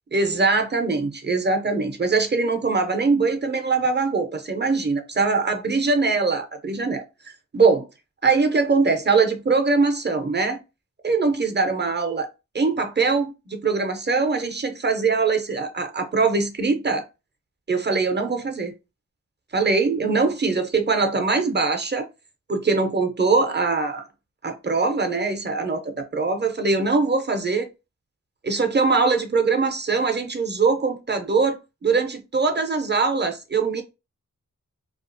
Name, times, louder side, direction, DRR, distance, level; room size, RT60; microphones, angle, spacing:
voice 1, 0.1-7.0 7.5-7.8 8.2-10.6 11.0-12.3 12.5-17.0 17.7-18.7 19.5-22.0 22.5-24.0 24.4-27.7 28.4-31.6 31.8-33.8, right 4 dB, 30° right, 0.6 m, -22 dB
2.4 x 2.4 x 2.5 m
wide cardioid pair, 50°, 33 cm